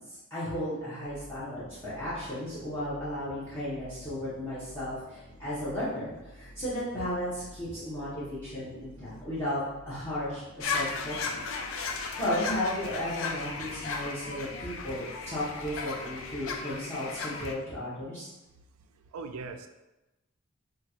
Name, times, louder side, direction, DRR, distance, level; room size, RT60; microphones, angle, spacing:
voice 1, 0.1-9.6 9.9-11.5 12.2-18.3, left 1 dB, 10° left, -13 dB, 0.8 m, -34 dB
sound 1, 1.0-16.6, equal, 45° left, 0.8 m, -52 dB
sound 2, 10.6-17.5, left 4 dB, 65° left, 0.4 m, -35 dB
voice 2, 18.9-19.7, right 4 dB, 80° right, 6 dB, 0.3 m, -40 dB
3.6 x 2.3 x 2.9 m, 1.0 s
head